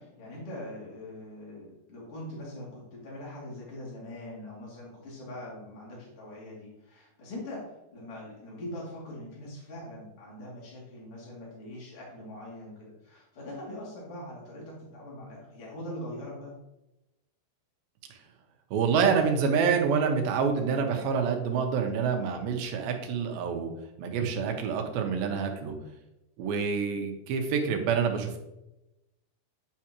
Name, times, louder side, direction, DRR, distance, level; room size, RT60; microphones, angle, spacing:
voice 1, 0.0-16.5, left 1 dB, 40° left, -6 dB, 3.3 m, -42 dB
voice 2, 18.7-23.7 24.0-25.7 26.4-28.4, right 6 dB, 85° right, 4 dB, 2.7 m, -27 dB
9.4 x 4.8 x 2.9 m, 0.93 s
omnidirectional pair, 4.1 m